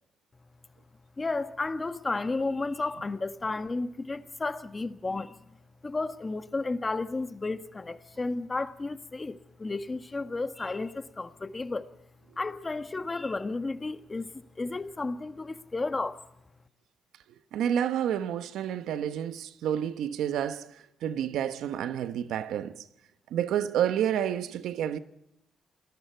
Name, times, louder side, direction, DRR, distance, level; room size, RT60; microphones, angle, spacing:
voice 1, 1.2-5.4 5.8-11.9 12.4-16.2, left 3 dB, 25° left, 1.5 m, -33 dB
voice 2, 17.5-22.8 23.3-25.0, right 9 dB, 85° right, 1.1 m, -29 dB
29.0 x 20.5 x 4.6 m
cardioid pair, 80°, 0 cm